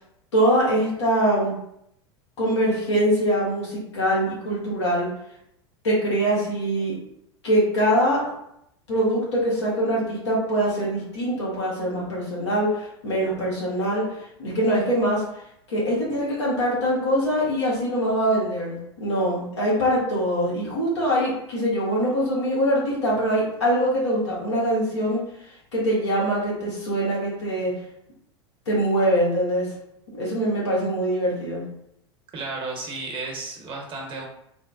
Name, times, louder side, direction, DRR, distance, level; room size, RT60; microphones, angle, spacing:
voice 1, 0.3-1.5 2.4-5.1 5.8-6.9 7.4-8.3 8.9-14.1 14.4-15.2 15.7-25.2 25.7-27.8 28.7-29.7 30.1-31.7, equal, 85° left, -6 dB, 1.3 m, -23 dB
voice 2, 32.3-34.2, right 3 dB, 35° right, -1 dB, 1.0 m, -33 dB
3.2 x 2.1 x 2.5 m, 0.75 s
hypercardioid pair, 90°, 14 cm